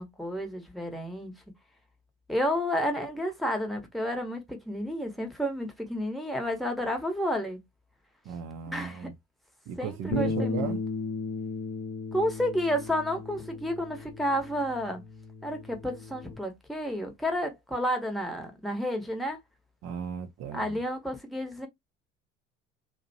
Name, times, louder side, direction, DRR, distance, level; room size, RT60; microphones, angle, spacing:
voice 1, 0.0-1.3 2.3-7.6 8.7-9.1 9.8-10.8 12.1-15.0 15.4-19.4 20.5-21.7, equal, ahead, 0.9 m, -31 dB
voice 2, 8.3-9.1 9.7-10.8 19.8-20.8, right 7 dB, 50° right, 0.6 m, -35 dB
Bass guitar, 10.1-16.4, left 4 dB, 40° left, 0.7 m, -36 dB
2.7 x 2.1 x 2.6 m
hypercardioid pair, 60°, 35 cm